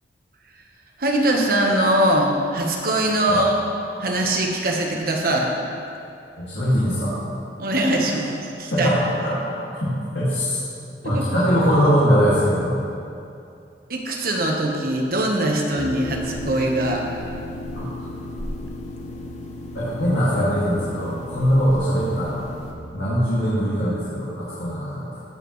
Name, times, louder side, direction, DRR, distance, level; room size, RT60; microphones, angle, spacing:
voice 1, 1.0-3.6 4.0-5.5 7.6-8.9 11.0-11.2 13.9-17.0, right 1 dB, 55° right, 0 dB, 1.3 m, -22 dB
voice 2, 6.5-7.1 8.7-9.5 10.1-10.6 11.0-12.8 17.7-17.8 19.7-22.4 22.9-25.1, equal, 75° left, -10 dB, 2.4 m, -21 dB
sound 1, 15.8-22.7, left 1 dB, 40° left, 1.0 m, -34 dB
16.0 x 7.7 x 3.3 m, 2.6 s
head